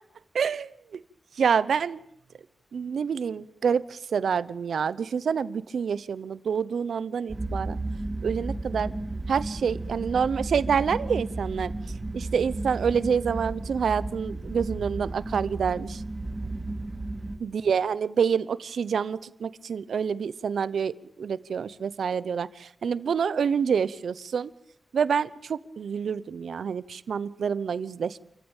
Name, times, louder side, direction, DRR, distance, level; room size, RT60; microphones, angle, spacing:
voice 1, 0.3-1.0 1.4-2.0 2.7-7.8 8.2-8.9 9.3-11.7 12.1-16.0 17.4-20.9 21.2-24.5 24.9-28.2, right 6 dB, 80° right, 17 dB, 0.8 m, -27 dB
sound 1, 7.3-17.4, right 2 dB, 15° right, 2.4 m, -33 dB
28.0 x 14.5 x 9.0 m, 0.71 s
wide cardioid pair, 175°, 0 cm